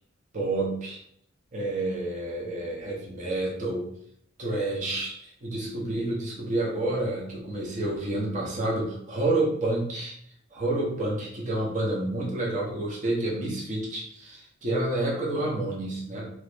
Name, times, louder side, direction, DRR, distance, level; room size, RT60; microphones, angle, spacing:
voice 1, 0.3-1.0 1.5-3.9 4.4-10.1 10.5-16.2, right 2 dB, 40° right, -3 dB, 0.7 m, -29 dB
3.0 x 2.5 x 3.3 m, 0.68 s
head